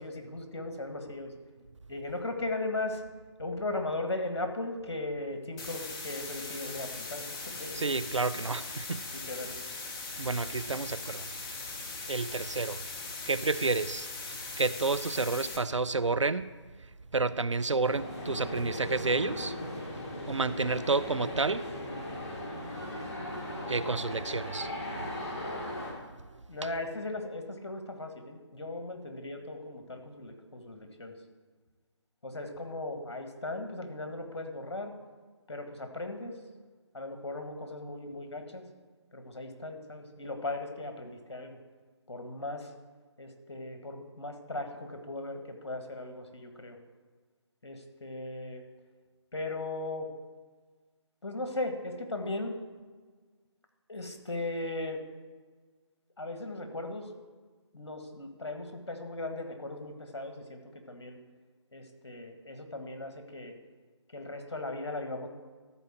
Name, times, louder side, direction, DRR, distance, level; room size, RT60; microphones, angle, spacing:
voice 1, 0.0-1.3 1.9-3.0 3.4-7.8 9.3-9.6 26.5-31.1 32.2-34.9 35.5-36.3 36.9-38.6 39.1-41.6 42.1-42.7 43.2-46.8 47.6-48.6 49.3-50.1 51.2-52.5 53.9-55.0 56.2-57.1 57.7-60.6 60.9-61.2 61.7-63.5 64.1-65.3, left 2 dB, 60° left, 1.6 m, -37 dB
sound 1, 5.6-15.6, left 3 dB, 10° left, 0.6 m, -40 dB
voice 2, 7.7-9.1 10.2-11.3 11.7-16.5 16.8-19.6 20.3-21.7 23.7-24.7 25.5-25.6 26.3-26.7, right 3 dB, 85° right, 0.5 m, -31 dB
sound 2, 17.8-25.9, left 1 dB, 30° left, 2.5 m, -38 dB
13.0 x 4.4 x 7.6 m
figure-of-eight pair, 150°, 15 cm